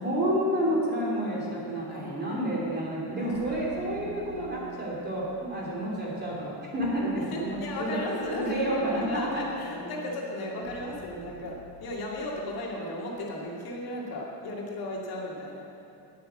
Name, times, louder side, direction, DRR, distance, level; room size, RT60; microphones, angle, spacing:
voice 1, 0.0-5.2 5.5-8.0 8.4-9.3, right 1 dB, 25° right, -5 dB, 3.1 m, -29 dB
voice 2, 1.9-2.6 3.2-3.5 5.4-5.9 7.2-15.6, left 1 dB, 60° left, -3 dB, 2.1 m, -35 dB
sound 1, 3.3-12.5, right 3 dB, 90° right, 2.4 m, -50 dB
9.6 x 8.8 x 7.5 m, 2.7 s
cardioid pair, 155°, 41 cm